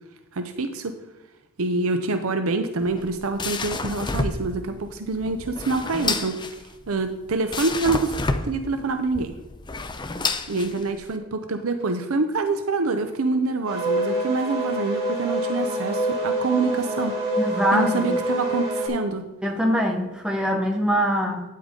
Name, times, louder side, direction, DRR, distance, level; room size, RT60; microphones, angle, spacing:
voice 1, 0.3-0.9 1.6-6.4 6.9-8.2 8.4-9.4 10.5-17.1 17.7-19.2, right 3 dB, 80° right, 7 dB, 0.7 m, -26 dB
sound 1, 2.8-11.2, left 3 dB, 20° left, 0.6 m, -30 dB
sound 2, 13.7-18.9, right 1 dB, 25° right, 3.6 m, -26 dB
voice 2, 17.4-18.1 19.4-21.4, equal, 5° right, 1 dB, 1.4 m, -23 dB
9.7 x 8.4 x 3.8 m, 1.1 s
head